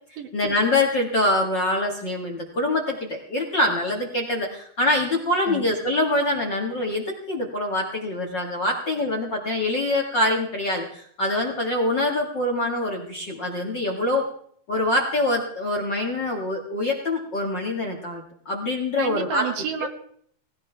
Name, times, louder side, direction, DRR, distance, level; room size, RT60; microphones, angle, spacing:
voice 1, 0.3-14.3 14.7-19.4 19.8-19.9, left 1 dB, 40° left, 0 dB, 2.1 m, -24 dB
voice 2, 19.0-19.9, right 7 dB, 70° right, 5 dB, 3.3 m, -30 dB
18.5 x 17.5 x 3.5 m, 0.63 s
omnidirectional pair, 4.1 m